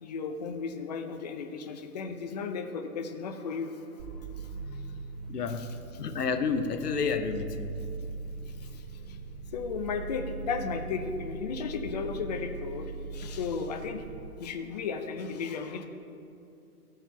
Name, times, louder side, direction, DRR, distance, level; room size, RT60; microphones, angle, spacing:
voice 1, 0.0-4.8 5.6-5.7 8.4-9.2 9.5-14.0 14.4-15.9, left 5 dB, 30° left, 6 dB, 0.4 m, -35 dB
sound 1, 4.0-14.2, right 4 dB, 55° right, 1.7 m, -40 dB
voice 2, 5.3-5.7 6.0-7.8, left 5 dB, 80° left, 8 dB, 0.8 m, -30 dB
13.5 x 4.7 x 4.5 m, 2.7 s
hypercardioid pair, 130°, 46 cm